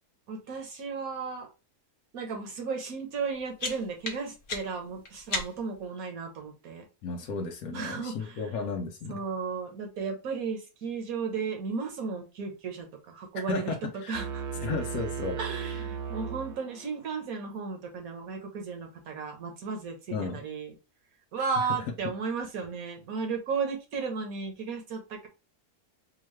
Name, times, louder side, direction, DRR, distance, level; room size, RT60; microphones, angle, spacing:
voice 1, 0.3-1.5 2.1-6.8 7.7-8.4 9.1-13.7 14.1-14.4 15.4-20.7 21.3-25.3, right 5 dB, 65° right, 3 dB, 1.5 m, -34 dB
sound 1, 3.1-5.8, left 3 dB, 40° left, 1.0 m, -37 dB
voice 2, 7.0-9.2 13.5-14.2 14.6-15.4 20.1-20.4 21.6-21.7, left 4 dB, 75° left, 2 dB, 1.1 m, -34 dB
sound 2, 14.1-17.1, right 7 dB, 90° right, 1.2 m, -36 dB
4.5 x 2.3 x 3.1 m, 0.29 s
omnidirectional pair, 1.6 m